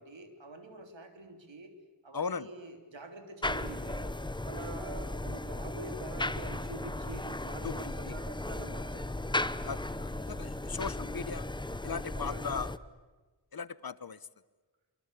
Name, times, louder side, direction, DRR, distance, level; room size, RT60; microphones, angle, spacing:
voice 1, 0.0-1.7 2.0-4.1 4.4-9.1 12.1-12.6, right 3 dB, 80° right, 6 dB, 3.5 m, -46 dB
voice 2, 2.1-2.5 7.6-8.1 9.6-11.5 11.8-12.7 13.5-14.2, left 5 dB, 55° left, 17 dB, 1.0 m, -38 dB
sound 1, 3.4-12.8, left 1 dB, 10° left, 0.8 m, -36 dB
26.0 x 25.0 x 8.4 m, 1.3 s
wide cardioid pair, 75°, 45 cm